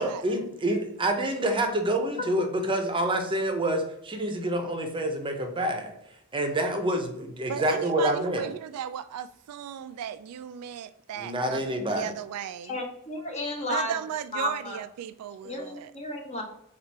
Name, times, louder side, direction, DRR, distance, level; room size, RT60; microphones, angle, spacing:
voice 1, 0.0-5.9 6.3-8.5 11.2-12.1, right 1 dB, 25° right, 0.7 m, -27 dB
voice 2, 7.5-12.8 13.7-15.9, right 9 dB, 85° right, 0.3 m, -36 dB
voice 3, 12.6-13.9 14.3-14.8 15.4-16.4, left 1 dB, 30° left, 0.9 m, -32 dB
4.3 x 2.5 x 4.5 m
head